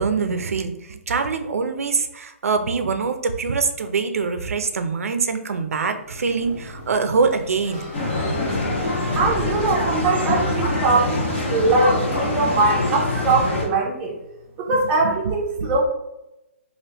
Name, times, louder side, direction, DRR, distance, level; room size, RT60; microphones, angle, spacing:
voice 1, 0.0-7.9, right 5 dB, 90° right, 8 dB, 0.4 m, -24 dB
Sliding door, 5.9-10.8, left 2 dB, 20° left, 0.7 m, -36 dB
sound 1, 7.9-13.6, left 2 dB, 50° left, 1.1 m, -24 dB
voice 2, 9.2-14.2 14.6-15.8, right 3 dB, 15° right, -2 dB, 0.5 m, -21 dB
3.3 x 2.5 x 2.8 m, 0.91 s
hypercardioid pair, 170°, 8 cm